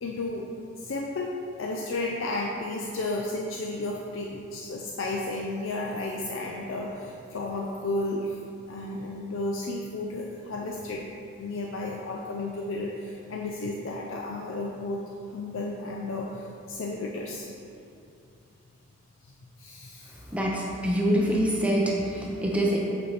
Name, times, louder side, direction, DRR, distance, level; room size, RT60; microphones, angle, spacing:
voice 1, 0.0-0.5 0.8-1.3 1.6-8.4 8.7-11.0 11.4-15.0 15.3-17.5 19.2-20.3, left 2 dB, 65° left, -1 dB, 0.4 m, -33 dB
voice 2, 20.3-22.8, equal, 5° right, -2 dB, 0.5 m, -25 dB
8.0 x 4.3 x 3.3 m, 2.5 s
head